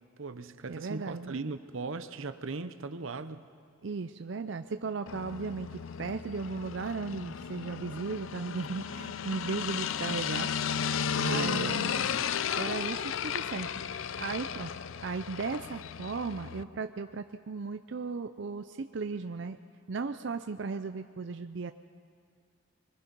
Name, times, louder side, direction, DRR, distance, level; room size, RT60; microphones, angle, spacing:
voice 1, 0.2-3.5 11.3-12.3, right 3 dB, 85° right, 11 dB, 0.8 m, -38 dB
voice 2, 0.7-1.3 3.8-10.5 10.9-11.9 12.6-13.7 13.9-14.7 15.0-19.6 19.9-21.7, right 4 dB, 65° right, 8 dB, 0.5 m, -36 dB
sound 1, 5.1-16.6, left 7 dB, 80° left, 0.5 m, -34 dB
23.5 x 22.5 x 5.3 m, 2.2 s
head